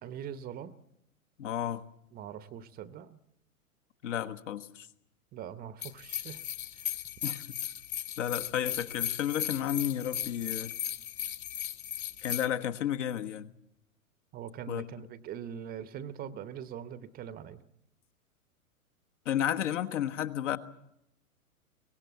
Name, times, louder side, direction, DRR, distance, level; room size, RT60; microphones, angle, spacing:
voice 1, 0.0-0.7 2.1-3.2 5.3-6.4 6.7-6.9 14.3-17.6, right 9 dB, 20° right, 0.8 m, -42 dB
voice 2, 1.4-1.8 4.0-4.9 7.2-7.4 8.2-10.7 12.2-13.5 14.7-14.9 19.2-20.6, left 10 dB, 55° left, 1.4 m, -32 dB
sound 1, 5.8-12.5, left 10 dB, 35° left, 1.3 m, -36 dB
23.5 x 18.0 x 8.3 m
figure-of-eight pair, 110°, 44 cm